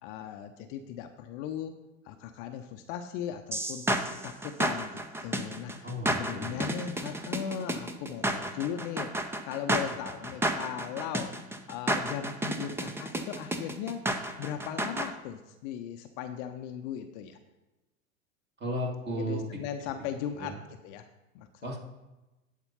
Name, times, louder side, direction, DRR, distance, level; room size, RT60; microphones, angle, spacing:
voice 1, 0.0-1.8 2.0-3.8 4.2-11.4 11.7-14.0 14.4-17.4 19.1-20.6 20.8-21.1 21.3-21.5, left 9 dB, 40° left, 7 dB, 0.7 m, -38 dB
sound 1, 3.5-15.1, right 1 dB, 5° right, 0.6 m, -31 dB
voice 2, 5.8-6.7 18.6-19.6 20.3-20.6 21.6-21.8, equal, 25° right, 0 dB, 2.4 m, -35 dB
11.0 x 4.4 x 5.6 m, 1.0 s
figure-of-eight pair, 85°, 41 cm